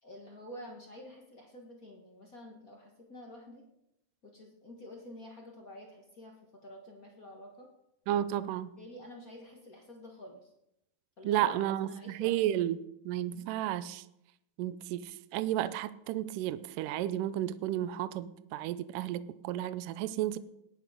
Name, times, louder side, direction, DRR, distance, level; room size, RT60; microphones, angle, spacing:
voice 1, 0.0-3.6 4.2-7.7 8.8-10.5 11.2-11.5 11.8-12.4, left 1 dB, 55° left, 0.9 m, -49 dB
voice 2, 8.1-8.8 11.2-12.8 13.1-14.0 14.6-20.4, right 12 dB, 80° right, 2.0 m, -32 dB
17.5 x 10.0 x 5.0 m
omnidirectional pair, 4.4 m